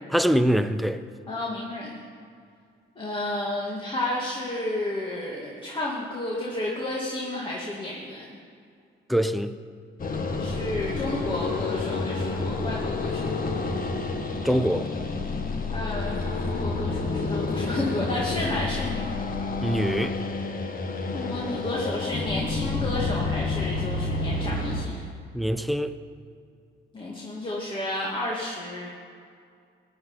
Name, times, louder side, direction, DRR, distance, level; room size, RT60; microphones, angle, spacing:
voice 1, 0.1-1.0 9.1-9.6 14.4-14.9 19.6-20.2 25.3-26.0, equal, ahead, 0.6 m, -24 dB
voice 2, 1.3-2.0 3.0-8.3 10.4-13.3 15.7-19.1 21.1-25.0 26.9-28.9, left 1 dB, 25° left, 2.2 m, -31 dB
sound 1, 10.0-24.8, left 3 dB, 45° left, 1.6 m, -29 dB
16.5 x 5.5 x 9.8 m
cardioid pair, 90°, 20 cm